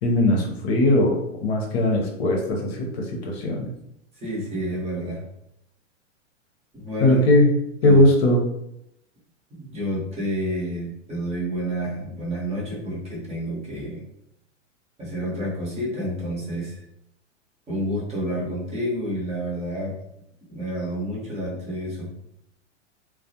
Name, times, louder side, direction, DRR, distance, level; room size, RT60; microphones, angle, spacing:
voice 1, 0.0-2.9 3.2-3.7 7.0-7.5 7.8-8.4, left 1 dB, 55° left, 0 dB, 0.7 m, -19 dB
voice 2, 4.2-5.3 6.7-7.2 7.8-8.0 9.6-14.0 15.0-16.8 17.7-19.9 20.5-22.1, equal, 15° right, -5 dB, 0.9 m, -29 dB
2.4 x 2.1 x 2.7 m, 0.80 s
hypercardioid pair, 110°, 37 cm